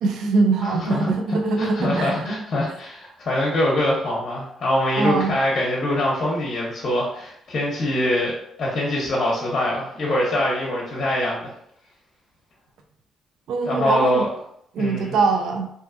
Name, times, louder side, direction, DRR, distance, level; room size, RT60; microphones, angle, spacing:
voice 1, 0.0-2.2 5.0-5.4 13.5-14.3 14.7-15.7, right 4 dB, 80° right, 4 dB, 0.4 m, -22 dB
voice 2, 0.6-11.5 13.6-14.3 14.8-15.1, left 1 dB, 45° left, -4 dB, 0.8 m, -24 dB
2.5 x 2.3 x 2.4 m, 0.72 s
cardioid pair, 90°, 0 cm